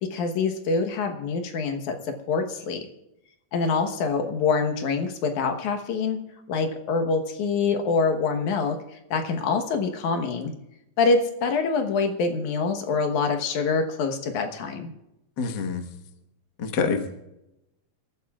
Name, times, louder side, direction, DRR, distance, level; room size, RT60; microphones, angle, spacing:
voice 1, 0.0-2.9 3.5-6.2 6.5-10.5 11.0-14.9, left 4 dB, 75° left, 5 dB, 2.6 m, -25 dB
voice 2, 15.4-15.9 16.6-17.2, left 5 dB, 45° left, 4 dB, 1.5 m, -26 dB
27.0 x 13.5 x 2.4 m, 0.90 s
omnidirectional pair, 3.6 m